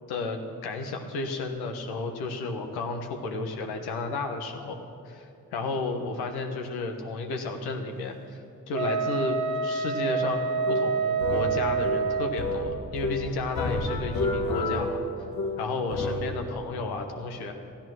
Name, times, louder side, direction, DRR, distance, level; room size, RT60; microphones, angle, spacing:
voice 1, 0.1-4.8 5.1-8.4 8.7-10.4 10.7-15.0 15.6-17.5, left 3 dB, 85° left, 5 dB, 1.2 m, -32 dB
Wind instrument woodwind instrument, 8.7-12.4, right 5 dB, 50° right, 1.1 m, -27 dB
sound 1, 10.3-16.4, left 2 dB, 60° left, 1.5 m, -30 dB
14.0 x 10.5 x 6.3 m, 2.6 s
hypercardioid pair, 40°, 37 cm